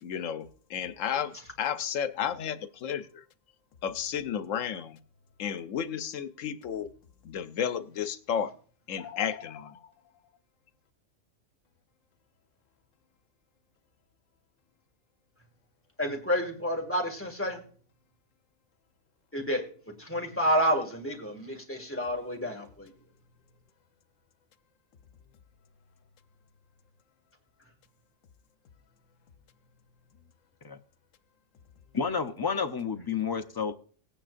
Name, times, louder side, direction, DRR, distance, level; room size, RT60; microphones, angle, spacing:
voice 1, 0.0-3.2 3.8-5.0 5.4-6.9 7.2-8.5 8.9-9.9, left 8 dB, 85° left, 12 dB, 1.1 m, -32 dB
voice 2, 16.0-17.6 19.3-19.6 20.0-22.9, equal, 10° left, 1 dB, 2.0 m, -29 dB
voice 3, 31.9-33.7, left 6 dB, 25° left, 8 dB, 0.5 m, -30 dB
18.5 x 9.1 x 2.5 m, 0.43 s
omnidirectional pair, 1.3 m